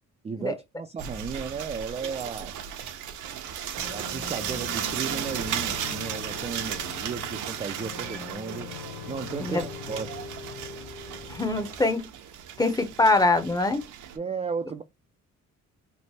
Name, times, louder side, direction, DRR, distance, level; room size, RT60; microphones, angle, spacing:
voice 1, 0.2-2.6 3.9-8.8 9.1-10.3 14.1-14.8, right 6 dB, 20° right, 0.3 m, -34 dB
sound 1, 1.0-14.2, right 9 dB, 75° right, 0.7 m, -35 dB
sound 2, 3.8-11.8, left 6 dB, 90° left, 0.7 m, -41 dB
voice 2, 11.3-12.1 12.6-13.8, left 2 dB, 10° left, 0.7 m, -23 dB
3.2 x 2.0 x 4.1 m
cardioid pair, 90°, 30 cm